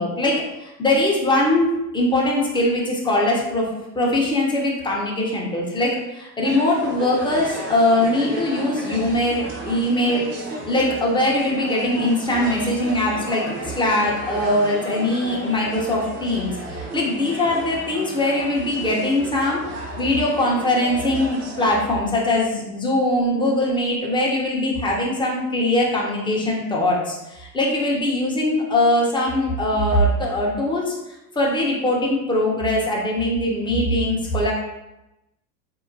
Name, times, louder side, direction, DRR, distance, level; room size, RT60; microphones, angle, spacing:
voice 1, 0.0-10.3 10.7-31.0 31.3-34.5, left 1 dB, 10° left, -3 dB, 0.9 m, -21 dB
sound 1, 6.4-21.8, right 1 dB, 30° right, 0.8 m, -34 dB
4.2 x 2.8 x 2.7 m, 0.94 s
figure-of-eight pair, 70°, 49 cm